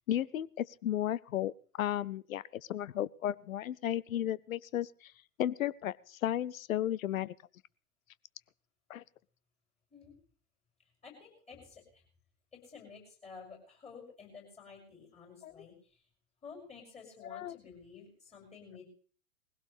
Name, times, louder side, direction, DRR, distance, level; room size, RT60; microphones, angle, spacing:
voice 1, 0.1-1.5 1.8-5.1 5.4-7.3 8.9-9.0 15.4-15.5 17.3-17.6, left 12 dB, 60° left, 21 dB, 0.7 m, -34 dB
voice 2, 11.0-12.0 12.5-16.0 16.4-18.8, left 5 dB, 15° left, -1 dB, 6.3 m, -52 dB
20.5 x 16.5 x 3.4 m, 0.43 s
figure-of-eight pair, 110°, 47 cm